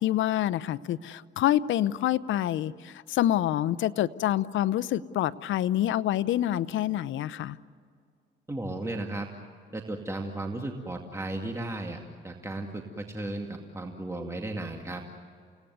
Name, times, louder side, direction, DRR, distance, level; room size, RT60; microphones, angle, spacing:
voice 1, 0.0-7.6, left 12 dB, 75° left, 15 dB, 0.8 m, -27 dB
voice 2, 8.5-9.3 9.7-12.0 12.2-15.0, right 2 dB, 15° right, 2 dB, 2.3 m, -35 dB
29.5 x 18.0 x 9.4 m, 2.2 s
cardioid pair, 90°, 20 cm